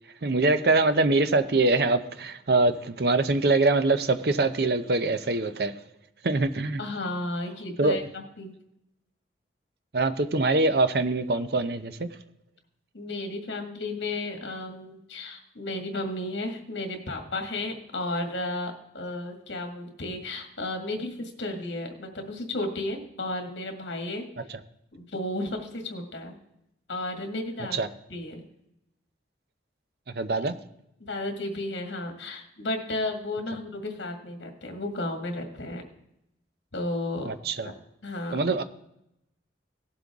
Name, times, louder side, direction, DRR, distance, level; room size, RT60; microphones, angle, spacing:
voice 1, 0.2-5.7 6.2-6.8 7.8-8.0 9.9-12.1 27.7-27.9 30.1-30.6 37.3-37.7 38.3-38.6, right 2 dB, 55° right, 0.6 m, -24 dB
voice 2, 6.8-8.5 12.9-24.3 24.9-26.4 26.9-27.8 28.1-28.4 31.0-35.8 36.7-37.3 37.6-37.7 38.0-38.4, left 2 dB, 75° left, 1.9 m, -33 dB
17.5 x 7.8 x 3.6 m
head